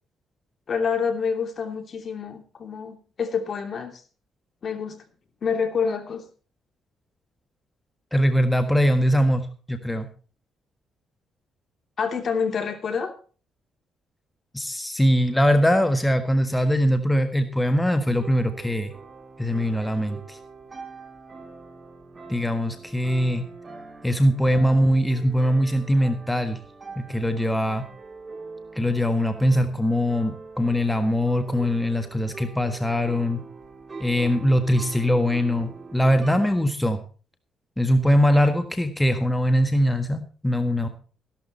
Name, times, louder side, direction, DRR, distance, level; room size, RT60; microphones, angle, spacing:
voice 1, 0.7-4.0 4.6-5.0 5.4-6.2 12.0-13.1, left 6 dB, 50° left, 6 dB, 2.8 m, -27 dB
voice 2, 8.1-10.1 14.5-18.9 19.4-20.4 22.3-23.4 24.0-26.6 27.0-27.8 28.7-33.4 34.0-37.0 37.8-40.9, equal, 10° left, 7 dB, 1.5 m, -22 dB
sound 1, 18.0-36.6, right 4 dB, 30° right, 3.4 m, -43 dB
14.5 x 12.0 x 4.2 m, 0.37 s
cardioid pair, 90°, 0 cm